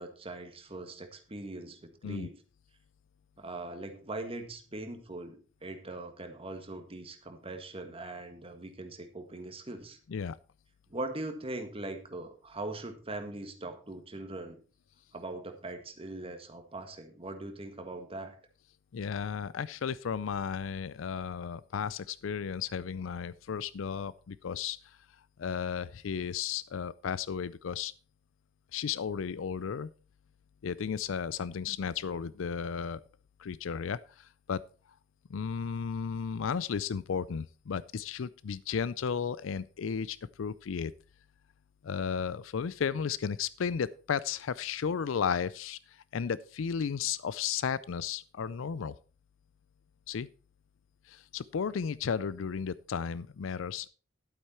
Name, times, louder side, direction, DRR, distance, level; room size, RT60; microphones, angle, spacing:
voice 1, 0.0-2.4 3.4-10.0 10.9-14.6 15.1-18.4, right 2 dB, 30° right, 6 dB, 1.7 m, -41 dB
voice 2, 18.9-25.0 25.4-27.9 28.7-29.9 30.6-33.0 33.4-34.6 35.3-40.9 41.8-48.9 50.1-50.3 51.1-53.9, left 7 dB, 90° left, 19 dB, 0.4 m, -34 dB
12.0 x 8.1 x 4.3 m, 0.37 s
head